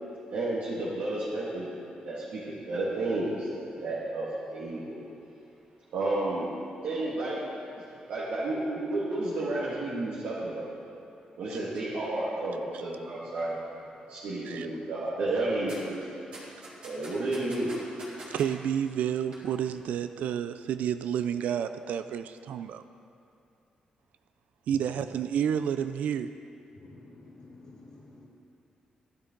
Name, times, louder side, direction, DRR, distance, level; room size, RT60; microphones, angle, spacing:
voice 1, 0.3-1.7 2.1-5.0 5.9-6.5 6.8-7.4 8.1-10.8 11.4-13.7 14.1-16.0 16.8-17.7, right 2 dB, 75° right, -9 dB, 2.1 m, -31 dB
sound 1, 15.7-15.8 16.3-18.5 19.1-19.4 19.7-19.8, right 2 dB, 45° right, 3.1 m, -44 dB
voice 2, 18.3-22.8 24.7-26.3, right 9 dB, 90° right, 10 dB, 0.3 m, -30 dB
voice 3, 24.7-25.1 26.7-28.2, left 2 dB, 25° left, -6 dB, 1.3 m, -50 dB
14.0 x 12.0 x 3.9 m, 2.7 s
wide cardioid pair, 170°, 2 cm